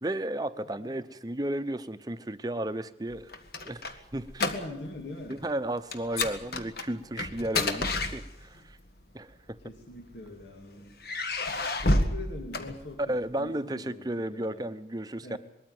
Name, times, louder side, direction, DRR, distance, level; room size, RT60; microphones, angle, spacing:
voice 1, 0.0-3.3 3.6-4.3 5.3-8.8 9.1-9.3 13.1-15.4, right 1 dB, 20° right, 11 dB, 0.8 m, -33 dB
voice 2, 0.6-1.0 4.4-5.4 6.2-6.3 9.6-11.0 11.8-14.7 15.2-15.4, left 2 dB, 80° left, 3 dB, 2.5 m, -42 dB
sound 1, 3.1-5.0 5.3-5.5 5.9-8.7 9.6-10.4 11.0-13.3, left 2 dB, 60° left, 1.6 m, -30 dB
21.5 x 14.0 x 9.5 m, 0.87 s
head